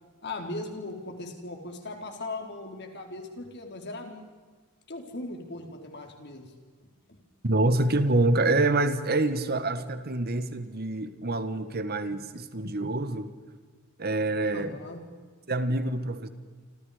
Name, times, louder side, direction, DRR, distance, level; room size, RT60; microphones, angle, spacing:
voice 1, 0.2-4.2 4.9-6.5 7.1-7.2 14.5-15.0, left 2 dB, 50° left, 4 dB, 4.1 m, -38 dB
voice 2, 7.4-13.3 14.0-14.7 15.5-16.3, right 2 dB, 45° right, 11 dB, 1.5 m, -26 dB
29.0 x 26.0 x 5.1 m, 1.5 s
head